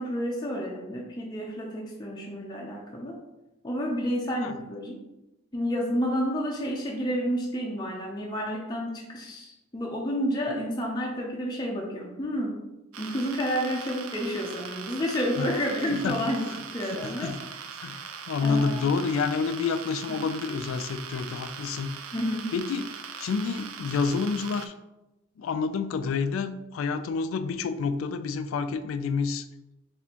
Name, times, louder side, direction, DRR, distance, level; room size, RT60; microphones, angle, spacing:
voice 1, 0.0-3.2 3.6-5.0 5.5-12.6 13.0-17.3 18.4-18.9 20.1-20.2 22.1-22.5, equal, 20° left, -2 dB, 0.5 m, -30 dB
sound 1, 12.9-24.7, right 6 dB, 85° right, 0.4 m, -41 dB
voice 2, 17.0-17.4 17.8-18.0 18.3-21.9 22.5-22.8 23.2-24.7 25.4-29.4, left 5 dB, 80° left, 11 dB, 0.3 m, -28 dB
4.2 x 3.5 x 2.9 m, 0.97 s
head